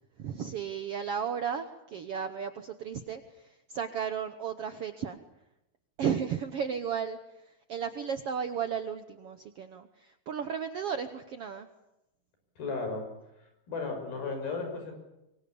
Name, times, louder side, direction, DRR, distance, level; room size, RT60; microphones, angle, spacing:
voice 1, 0.2-5.2 6.0-11.7, right 7 dB, 70° right, 9 dB, 1.4 m, -34 dB
voice 2, 12.6-13.1 13.7-14.9, left 4 dB, 85° left, 4 dB, 7.8 m, -34 dB
24.5 x 23.5 x 8.6 m, 0.93 s
omnidirectional pair, 4.1 m